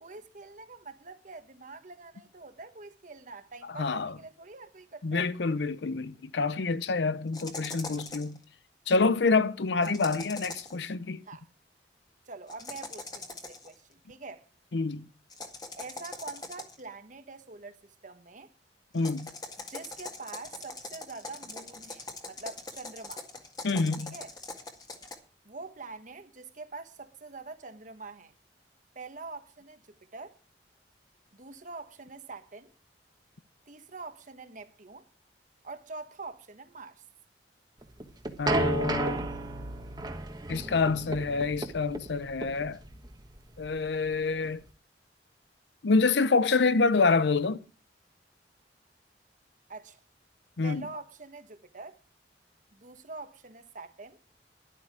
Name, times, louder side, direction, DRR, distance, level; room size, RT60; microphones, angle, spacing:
voice 1, 0.0-5.3 9.8-10.0 11.2-11.5 12.2-14.4 15.8-18.5 19.6-23.2 24.1-24.3 25.4-28.3 28.9-30.4 31.3-32.7 33.7-35.1 35.6-37.0 49.7-50.0 50.6-52.0 52.7-54.2, right 3 dB, 45° right, 1.2 m, -45 dB
voice 2, 3.7-4.1 5.0-8.4 8.9-11.2 14.7-15.1 18.9-19.3 23.6-24.1 38.4-39.3 40.5-42.8 43.6-44.6 45.8-47.6 50.6-50.9, left 4 dB, 80° left, 0.6 m, -27 dB
sound 1, 7.3-8.4 9.8-10.8 12.5-13.7 15.3-16.9 18.9-25.1, left 3 dB, 25° left, 1.8 m, -42 dB
sound 2, 37.8-44.7, right 2 dB, 25° right, 1.3 m, -33 dB
12.0 x 11.5 x 4.7 m
head